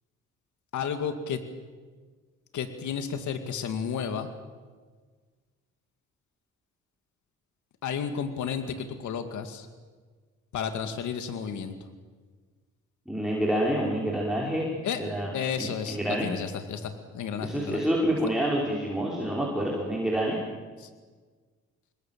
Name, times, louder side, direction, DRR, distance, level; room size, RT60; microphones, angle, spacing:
voice 1, 0.7-1.4 2.5-4.3 7.8-9.7 10.5-11.7 14.8-15.0 15.3-17.8 20.8-20.9, left 7 dB, 75° left, 8 dB, 2.3 m, -32 dB
voice 2, 13.1-14.7 15.0-15.3 15.6-16.3 17.4-20.4, right 1 dB, ahead, -4 dB, 5.3 m, -27 dB
27.5 x 21.5 x 7.6 m, 1.5 s
cardioid pair, 90°, 30 cm